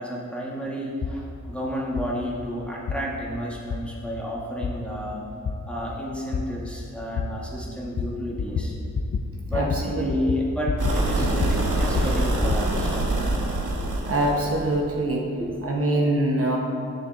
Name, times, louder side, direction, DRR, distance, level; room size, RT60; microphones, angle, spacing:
voice 1, 0.0-5.2 5.7-8.7 9.5-13.0 15.4-15.6, equal, 5° left, -4 dB, 1.3 m, -31 dB
sound 1, 1.0-1.2 2.0-2.1 2.9-3.0 3.7-3.8 4.6-4.7 5.4-5.6 6.3-6.4 7.2-7.3 8.0-8.1 8.4-8.7 9.0-9.2 9.5-9.8 10.1-11.0 11.2-12.6, left 5 dB, 40° left, 0.5 m, -27 dB
voice 2, 9.5-10.4 11.1-11.2 14.1-15.3 15.6-16.6, right 1 dB, 45° right, -2 dB, 0.9 m, -24 dB
sound 2, 10.8-14.8, right 2 dB, 80° right, 1.1 m, -25 dB
10.5 x 6.3 x 2.5 m, 2.5 s
wide cardioid pair, 80°, 31 cm